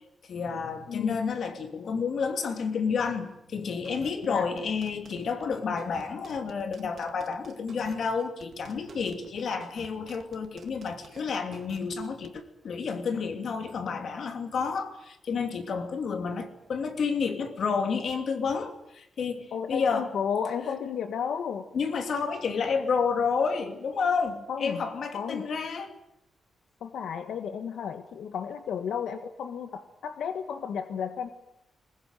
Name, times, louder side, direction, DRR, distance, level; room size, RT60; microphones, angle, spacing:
voice 1, 0.2-20.1 21.7-25.9, left 5 dB, 55° left, 7 dB, 2.9 m, -30 dB
sound 1, 3.8-12.4, right 6 dB, 50° right, 2.4 m, -51 dB
voice 2, 19.5-21.7 24.5-24.8 25.1-25.5 26.8-31.3, left 7 dB, 85° left, 8 dB, 1.5 m, -33 dB
21.5 x 20.5 x 9.2 m, 0.80 s
wide cardioid pair, 165°, 0 cm